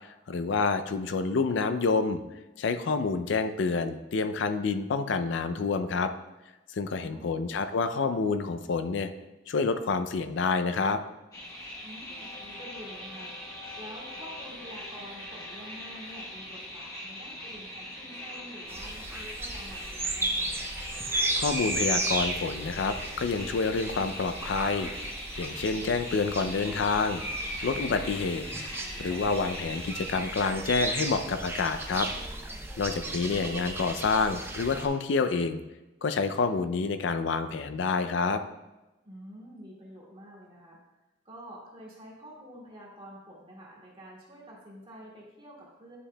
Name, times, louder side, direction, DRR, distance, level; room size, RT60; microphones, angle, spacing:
voice 1, 0.0-2.2 2.6-6.1 6.7-9.1 9.5-11.0 21.4-24.9 25.4-27.2 27.6-28.4 29.0-32.1 32.8-35.6 36.0-38.4, left 4 dB, 65° left, 10 dB, 0.4 m, -28 dB
voice 2, 7.0-7.5 11.8-20.5 32.8-33.0 39.0-40.8 41.3-46.0, equal, 30° right, -5 dB, 1.8 m, -48 dB
sound 1, 11.3-30.1, left 1 dB, 20° left, 1.2 m, -41 dB
sound 2, 18.7-34.9, right 2 dB, 15° right, 0.5 m, -35 dB
9.8 x 4.8 x 2.2 m, 1.0 s
head